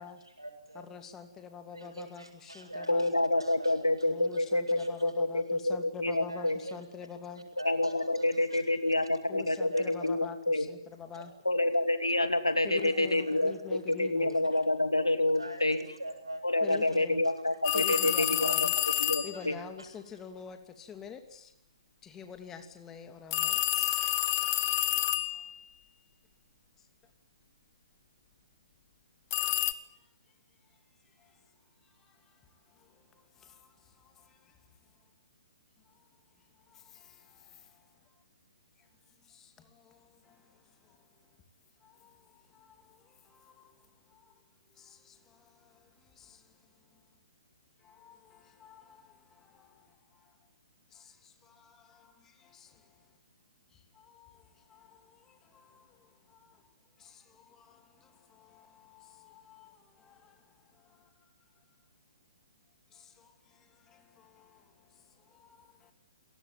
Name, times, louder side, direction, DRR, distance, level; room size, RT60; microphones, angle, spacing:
voice 1, 0.0-0.9 1.7-4.1 4.3-4.4 4.7-4.9 6.3-6.8 7.6-9.1 9.4-10.1 11.1-11.2 12.8-13.7 14.5-14.6 15.3-17.0 17.2-17.6 17.9-19.6, right 1 dB, 85° right, 6 dB, 7.7 m, -45 dB
voice 2, 0.7-3.1 4.0-7.4 9.3-11.3 12.6-14.5 16.6-17.3 17.7-18.8 19.2-21.5 22.0-24.0 25.3-25.5 26.8-26.9 30.0-30.1 30.6-30.8 31.0-31.5 31.8-35.1 35.8-36.1 36.4-38.2 38.8-41.4 41.8-44.4 44.7-47.0 47.8-50.5 50.9-53.2 53.7-61.3 62.9-65.9, left 7 dB, 15° left, 7 dB, 2.6 m, -49 dB
voice 3, 2.9-6.6 7.6-10.7 11.4-15.8 16.4-18.7 19.0-19.5, left 2 dB, 80° left, 9 dB, 2.9 m, -28 dB
sound 1, 17.6-19.4 23.3-25.6 29.3-29.7, left 15 dB, 35° left, 1.5 m, -29 dB
29.0 x 19.0 x 9.0 m, 0.79 s
figure-of-eight pair, 125°, 3 cm